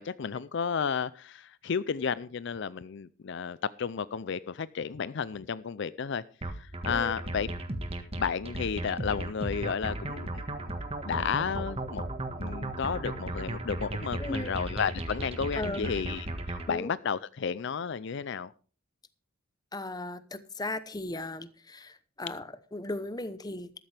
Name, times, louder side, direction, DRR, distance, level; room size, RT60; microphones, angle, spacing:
voice 1, 0.0-6.2 6.5-7.5 8.2-10.8 11.0-12.0 12.4-18.5, left 6 dB, 60° left, 0.5 m, -32 dB
sound 1, 6.4-16.7, right 1 dB, 30° right, 1.6 m, -36 dB
voice 2, 14.2-14.5 15.5-16.0 16.7-16.9 19.7-23.7, left 2 dB, 20° left, 0.9 m, -37 dB
13.5 x 13.5 x 3.4 m
head